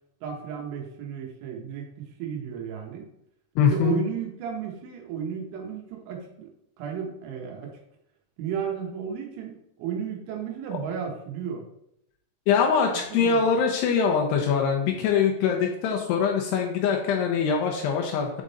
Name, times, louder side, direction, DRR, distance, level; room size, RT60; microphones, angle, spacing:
voice 1, 0.2-1.9 2.2-3.1 3.6-6.5 6.8-7.7 8.4-11.7 13.2-13.4, right 7 dB, 80° right, 1 dB, 3.5 m, -33 dB
voice 2, 3.6-4.0 12.5-18.4, left 6 dB, 85° left, 1 dB, 2.3 m, -23 dB
7.6 x 3.7 x 4.1 m, 0.77 s
omnidirectional pair, 5.5 m